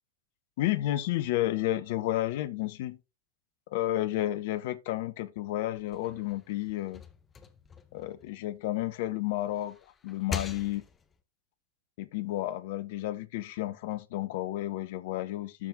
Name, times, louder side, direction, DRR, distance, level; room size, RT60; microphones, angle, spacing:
voice 1, 0.6-3.0 3.7-7.0 7.9-9.8 10.0-10.8 12.0-15.7, left 14 dB, 50° left, 0.8 m, -31 dB
sound 1, 5.8-9.0 9.4-11.2, left 6 dB, 20° left, 1.0 m, -42 dB
12.0 x 4.2 x 3.9 m
figure-of-eight pair, 90°, 0 cm